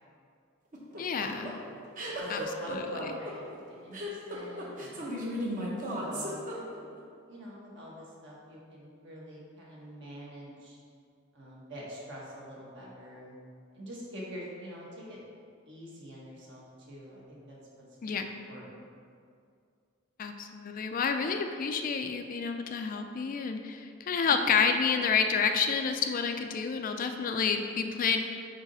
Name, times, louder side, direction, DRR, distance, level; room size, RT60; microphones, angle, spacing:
sound 1, 0.7-7.0, equal, 40° right, 0.9 m, -36 dB
voice 1, 1.0-1.5 2.3-2.4 2.7-3.1 18.0-18.3 20.2-28.2, left 6 dB, 40° left, 6 dB, 0.3 m, -29 dB
voice 2, 2.1-5.1 5.9-6.8 7.3-10.8 11.3-13.3 13.7-15.2 15.7-18.8 24.2-24.6, equal, 60° right, -5 dB, 1.4 m, -45 dB
4.8 x 3.9 x 5.5 m, 2.3 s
head